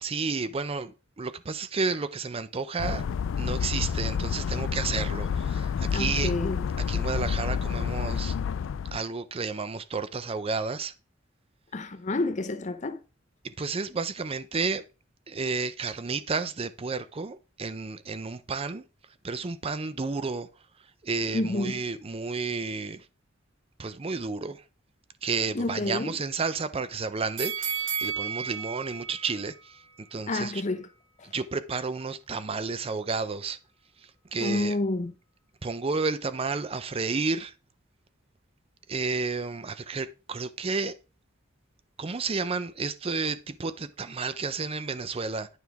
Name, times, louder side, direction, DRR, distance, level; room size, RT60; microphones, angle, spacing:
voice 1, 0.0-3.0 3.4-6.3 6.9-8.3 8.9-10.9 13.4-14.8 15.3-18.8 19.2-20.5 21.0-23.0 23.8-24.6 25.2-29.5 30.1-30.6 31.3-33.6 34.3-34.8 35.6-37.5 38.9-41.0 42.0-45.5, right 4 dB, 30° right, 0.5 m, -31 dB
sound 1, 2.8-9.0, left 7 dB, 85° left, 0.4 m, -29 dB
voice 2, 5.9-6.6 11.7-13.0 21.3-21.8 25.5-26.2 30.3-30.9 34.4-35.1, left 2 dB, 40° left, 0.7 m, -29 dB
sound 2, 27.4-30.5 30.9-31.0, right 7 dB, 80° right, 2.2 m, -34 dB
9.2 x 6.2 x 3.5 m
head